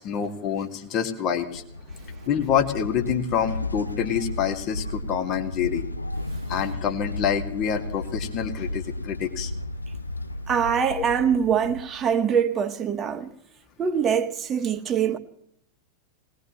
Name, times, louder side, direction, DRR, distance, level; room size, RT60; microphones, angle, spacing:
voice 1, 0.0-1.6 2.3-5.8 6.5-9.5, left 8 dB, 35° left, 2.2 m, -27 dB
sound 1, 1.2-12.3, left 2 dB, 85° left, 0.5 m, -34 dB
voice 2, 10.5-13.3 13.8-15.2, right 7 dB, 25° right, 1.4 m, -23 dB
20.0 x 19.5 x 3.2 m
figure-of-eight pair, 90°, 0 cm